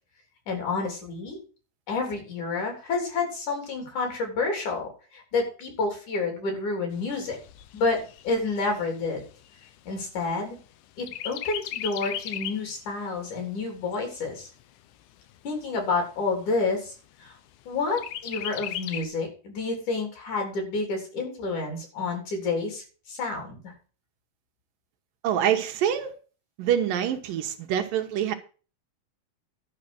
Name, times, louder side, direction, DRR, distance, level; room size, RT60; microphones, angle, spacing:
voice 1, 0.5-1.4 1.9-7.4 7.7-9.2 9.9-10.6 11.0-14.5 15.4-17.4 17.7-23.7, left 3 dB, 55° left, 4.9 m, -29 dB
Chirp tweet, 6.9-10.7 11.1-12.7 13.2-13.3 13.6-14.6 15.2-15.3 15.6-15.7 16.2-16.7 18.0-19.0, left 12 dB, 75° left, 1.9 m, -37 dB
voice 2, 25.2-26.1 26.6-28.3, right 9 dB, 75° right, 2.6 m, -25 dB
11.5 x 5.6 x 7.8 m
omnidirectional pair, 4.2 m